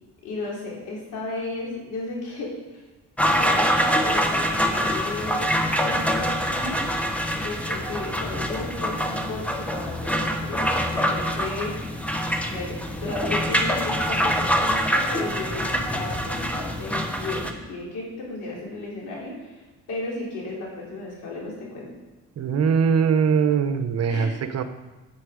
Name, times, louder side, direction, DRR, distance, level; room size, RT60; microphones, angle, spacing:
voice 1, 0.2-2.8 3.2-5.5 5.8-6.8 7.4-11.8 12.5-19.6 19.9-21.9 24.1-24.3, left 2 dB, 90° left, -4 dB, 3.8 m, -34 dB
sound 1, 3.2-17.5, equal, 5° left, 1.1 m, -25 dB
voice 2, 22.4-24.6, right 6 dB, 55° right, 10 dB, 0.9 m, -21 dB
9.7 x 8.8 x 5.1 m, 1.2 s
cardioid pair, 90°, 30 cm